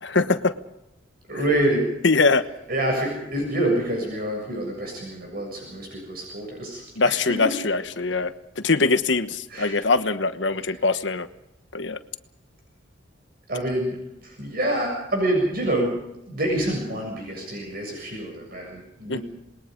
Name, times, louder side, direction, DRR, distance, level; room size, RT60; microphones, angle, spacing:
voice 1, 0.0-0.5 2.0-2.4 7.0-11.3 11.7-12.0 19.1-19.2, left 3 dB, 75° left, 10 dB, 1.2 m, -22 dB
voice 2, 1.3-1.9 2.7-7.6 9.5-9.8 10.6-10.8 13.5-16.0 16.3-19.2, right 1 dB, 50° right, 1 dB, 7.3 m, -27 dB
27.0 x 21.0 x 5.3 m, 0.88 s
head